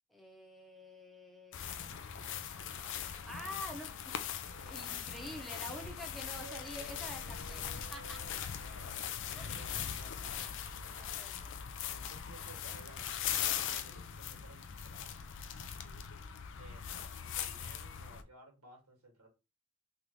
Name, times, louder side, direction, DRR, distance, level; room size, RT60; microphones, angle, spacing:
voice 1, 0.1-1.6 3.2-4.3 4.6-7.6 7.9-8.2 9.4-9.7 10.9-11.5 16.7-17.6, left 1 dB, ahead, 0.7 m, -48 dB
sound 1, 1.5-18.2, left 9 dB, 55° left, 0.4 m, -40 dB
voice 2, 1.8-2.6 3.4-3.6 4.4-8.9 9.2-10.6 11.9-15.2 16.6-19.3, right 2 dB, 85° right, 1.7 m, -56 dB
3.4 x 2.5 x 3.1 m
head